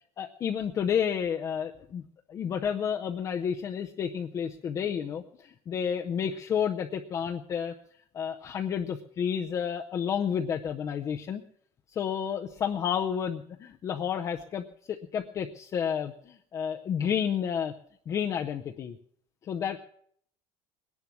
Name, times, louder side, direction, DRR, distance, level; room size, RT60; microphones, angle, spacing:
voice 1, 0.2-2.0 2.3-7.7 8.1-11.4 11.9-17.7 18.1-19.0 19.4-19.8, left 8 dB, 30° left, 3 dB, 0.6 m, -31 dB
20.0 x 10.5 x 6.1 m, 0.63 s
cardioid pair, 170°, 11 cm